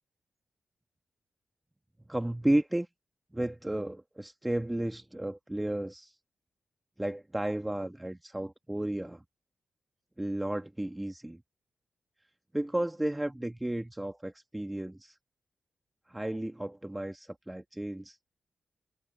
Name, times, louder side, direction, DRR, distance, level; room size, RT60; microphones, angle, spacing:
voice 1, 2.1-2.9 3.3-6.2 7.0-9.2 10.2-11.4 12.5-15.2 16.1-18.2, right 1 dB, 15° right, 1.8 m, -33 dB
supercardioid pair, 45°, 0 cm